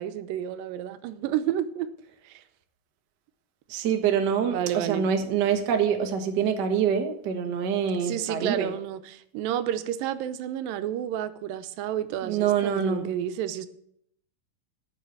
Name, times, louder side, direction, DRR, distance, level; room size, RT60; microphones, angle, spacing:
voice 1, 0.0-1.9 2.3-2.4 4.5-5.1 8.0-13.7, right 11 dB, 85° right, 2.5 m, -31 dB
voice 2, 3.7-8.7 12.2-13.1, right 7 dB, 60° right, 1.1 m, -25 dB
10.5 x 5.8 x 8.3 m
omnidirectional pair, 3.9 m